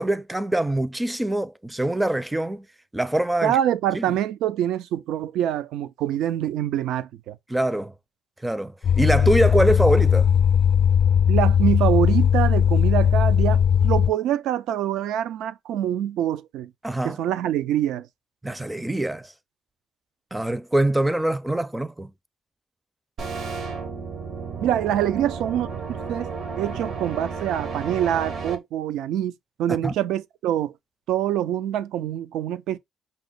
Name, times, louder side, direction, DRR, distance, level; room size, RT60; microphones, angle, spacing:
voice 1, 0.0-2.7 2.9-3.6 3.9-4.0 7.5-7.9 8.4-10.3 16.8-17.2 18.4-19.3 20.3-22.1 29.8-29.9, right 1 dB, 10° right, 0.4 m, -24 dB
voice 2, 3.4-7.4 11.3-16.7 17.0-18.1 24.6-25.7 26.1-29.3 29.6-30.7 31.1-32.8, right 11 dB, 90° right, 0.4 m, -25 dB
sound 1, 8.8-14.1, left 8 dB, 60° left, 0.4 m, -18 dB
sound 2, 23.2-28.6, right 5 dB, 65° right, 1.0 m, -32 dB
5.2 x 2.1 x 3.8 m
cardioid pair, 90°, 0 cm